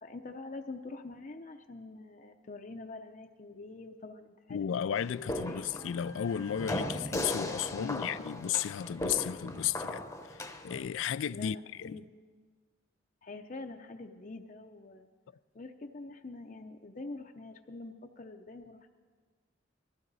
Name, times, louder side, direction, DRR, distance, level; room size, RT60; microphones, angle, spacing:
voice 1, 0.0-4.6 4.9-5.6 7.7-8.1 11.3-12.0 13.2-15.1 15.5-18.9, left 3 dB, 40° left, 0.6 m, -45 dB
voice 2, 4.5-10.0 10.4-12.0, left 9 dB, 85° left, 0.3 m, -34 dB
sound 1, 5.0-10.8, left 1 dB, 15° left, 0.8 m, -38 dB
22.0 x 15.0 x 4.0 m
head